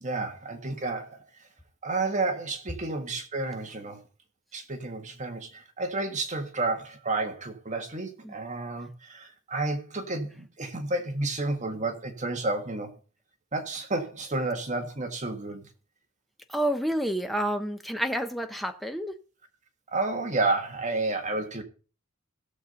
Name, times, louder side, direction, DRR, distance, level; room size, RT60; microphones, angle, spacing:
voice 1, 0.0-1.2 1.8-4.0 4.5-12.9 13.5-15.7 19.9-21.6, right 2 dB, 35° right, 1.7 m, -31 dB
voice 2, 16.5-19.1, right 1 dB, ahead, 0.9 m, -29 dB
17.0 x 7.4 x 4.0 m
head